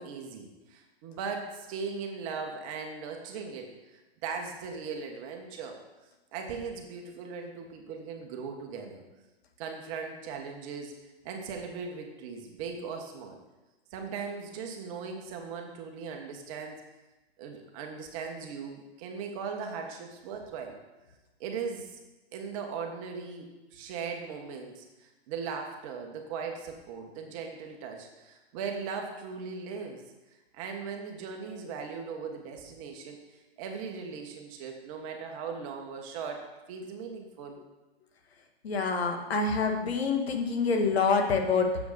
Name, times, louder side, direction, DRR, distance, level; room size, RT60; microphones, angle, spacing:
voice 1, 0.0-5.8 6.3-9.0 9.6-10.9 11.2-13.4 13.9-16.8 17.4-20.8 21.4-22.0 22.3-30.0 30.5-33.2 33.6-37.6, right 5 dB, 30° right, 3 dB, 1.3 m, -38 dB
voice 2, 38.6-41.8, left 4 dB, 75° left, 3 dB, 1.7 m, -26 dB
7.3 x 5.9 x 6.7 m, 1.1 s
hypercardioid pair, 150°, 32 cm